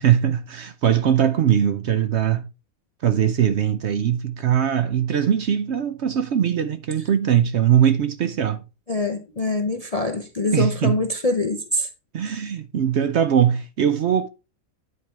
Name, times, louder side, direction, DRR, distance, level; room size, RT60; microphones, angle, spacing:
voice 1, 0.0-2.5 3.0-8.6 10.5-11.0 12.1-14.3, right 9 dB, 60° right, 0.8 m, -21 dB
voice 2, 8.9-11.9, left 2 dB, 40° left, 0.6 m, -24 dB
9.6 x 4.5 x 4.5 m
omnidirectional pair, 1.5 m